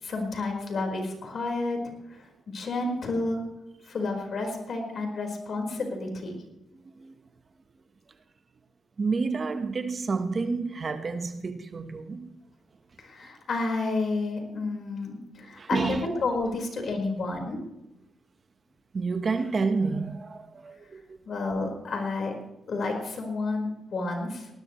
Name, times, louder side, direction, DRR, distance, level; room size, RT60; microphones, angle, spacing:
voice 1, 0.0-1.8 2.1-3.4 3.8-6.3 13.0-17.6 21.3-22.3 22.7-24.5, left 3 dB, 60° left, 4.6 m, -30 dB
voice 2, 9.0-12.3 15.6-16.1 18.9-21.2, right 4 dB, 45° right, 1.2 m, -29 dB
19.5 x 18.5 x 3.2 m
cardioid pair, 70°, 0 cm